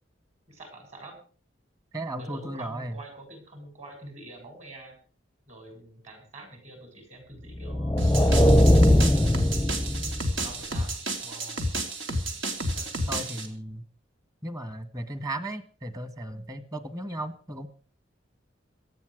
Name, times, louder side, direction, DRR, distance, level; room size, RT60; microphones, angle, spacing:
voice 1, 0.5-1.2 2.2-5.0 5.5-8.7 9.1-9.3 10.4-10.9 11.2-11.6 12.7-13.1, right 2 dB, 40° right, 5 dB, 7.4 m, -46 dB
voice 2, 1.9-2.9 13.1-13.8 14.4-17.7, right 1 dB, 20° right, 11 dB, 1.7 m, -35 dB
sound 1, 7.6-10.5, left 1 dB, 10° left, 0.6 m, -20 dB
sound 2, 8.0-13.5, right 1 dB, 80° right, 3.0 m, -31 dB
18.0 x 13.0 x 5.1 m, 0.40 s
head